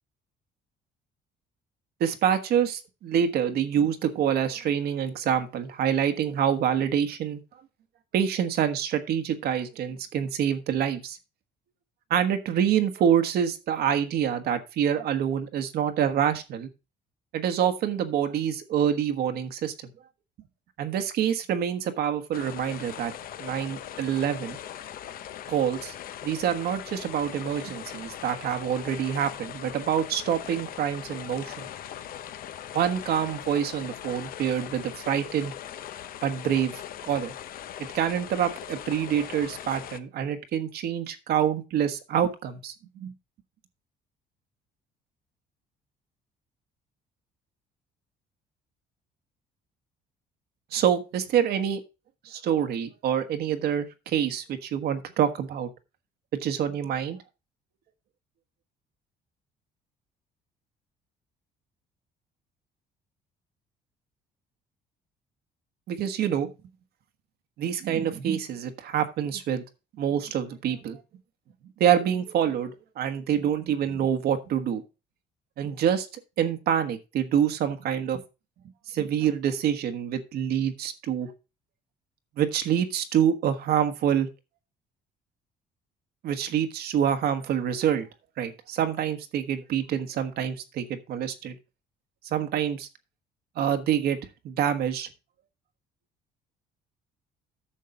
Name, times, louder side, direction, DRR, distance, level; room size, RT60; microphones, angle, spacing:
voice 1, 2.0-7.4 8.1-11.2 12.1-16.7 17.3-19.7 20.8-23.1 23.4-24.6 25.5-25.9 26.2-31.7 32.7-35.5 36.2-37.3 37.9-43.1 50.7-51.8 52.2-55.7 56.4-57.2 65.9-66.5 67.6-69.6 70.0-71.0 71.8-74.8 75.6-76.1 76.4-78.2 78.9-81.3 82.4-84.3 86.2-88.1 88.4-91.6 92.2-92.9 93.6-94.2 94.4-95.1, right 9 dB, 70° right, 8 dB, 1.3 m, -26 dB
sound 1, 22.3-40.0, left 11 dB, 60° left, 0.7 m, -40 dB
10.0 x 6.5 x 3.8 m, 0.29 s
cardioid pair, 110°, 17 cm